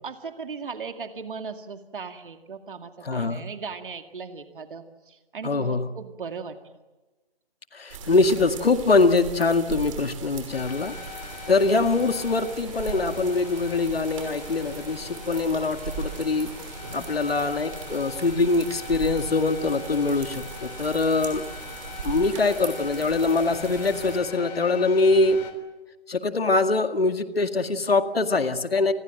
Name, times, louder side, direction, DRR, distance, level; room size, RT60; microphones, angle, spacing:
voice 1, 0.0-6.6, right 5 dB, 60° right, 7 dB, 2.2 m, -38 dB
voice 2, 3.0-3.5 5.4-5.9 7.7-11.0 11.5-16.5 16.9-21.4 22.0-25.4 26.1-28.9, left 3 dB, 75° left, 8 dB, 2.1 m, -23 dB
sound 1, 7.9-24.2, right 6 dB, 35° right, 5.7 m, -39 dB
sound 2, 10.5-25.5, left 7 dB, 45° left, 3.8 m, -42 dB
28.5 x 21.0 x 7.7 m, 1.2 s
figure-of-eight pair, 150°, 30 cm